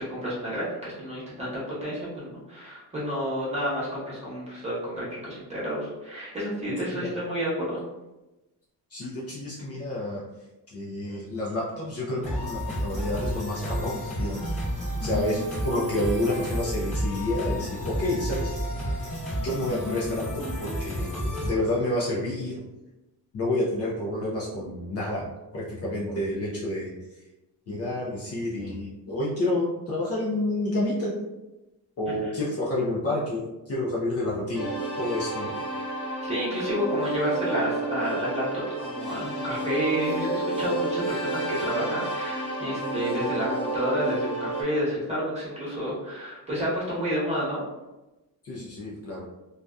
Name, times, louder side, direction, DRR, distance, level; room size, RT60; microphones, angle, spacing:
voice 1, 0.1-1.5 1.8-7.8 36.2-38.4 38.8-47.6, equal, 15° right, -8 dB, 1.0 m, -30 dB
voice 2, 8.9-10.2 10.7-14.5 15.0-18.5 19.4-22.6 23.3-25.3 25.5-26.9 27.7-31.1 32.0-34.7 35.0-35.6 48.4-49.2, left 1 dB, 40° left, -6 dB, 0.5 m, -29 dB
sound 1, 12.2-21.5, equal, 20° left, 0.8 m, -31 dB
sound 2, 34.5-44.6, right 1 dB, 60° left, 0.9 m, -31 dB
2.6 x 2.3 x 2.2 m, 1.0 s
cardioid pair, 150°, 40 cm